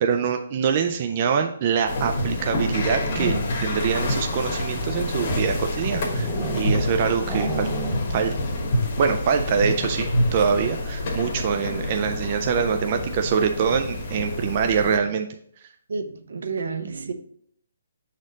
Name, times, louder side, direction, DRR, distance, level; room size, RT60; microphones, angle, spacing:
voice 1, 0.0-7.7 8.1-8.3 9.0-15.3, right 7 dB, 30° right, 5 dB, 0.3 m, -24 dB
sound 1, 1.9-15.0, left 1 dB, 40° left, 1.2 m, -27 dB
sound 2, 2.8-3.7 4.4-6.9 7.2-8.3 8.6-8.7 9.0-9.3, right 2 dB, 15° right, 1.0 m, -32 dB
voice 2, 15.9-17.1, right 4 dB, 70° right, 8 dB, 0.7 m, -30 dB
6.2 x 4.2 x 3.9 m, 0.65 s
hypercardioid pair, 170°, 0 cm